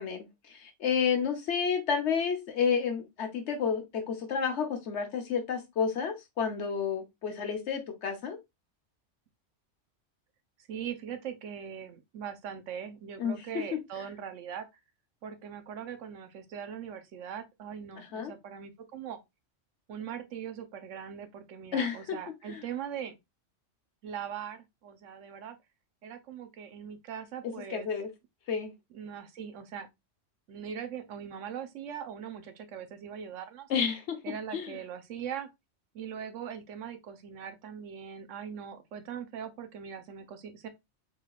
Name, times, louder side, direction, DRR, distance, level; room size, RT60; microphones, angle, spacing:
voice 1, 0.0-8.4 13.2-13.3 18.0-18.3 21.7-22.2 22.5-22.6 27.7-28.1 28.5-28.7 33.7-34.2 34.5-34.8, left 6 dB, 70° left, 1.2 m, -30 dB
voice 2, 10.7-14.7 15.2-19.2 19.9-23.2 24.0-25.6 26.0-27.9 28.9-29.9 30.5-33.7 34.2-35.5 35.9-40.7, right 8 dB, 85° right, 1.0 m, -41 dB
4.0 x 3.3 x 2.3 m
omnidirectional pair, 1.3 m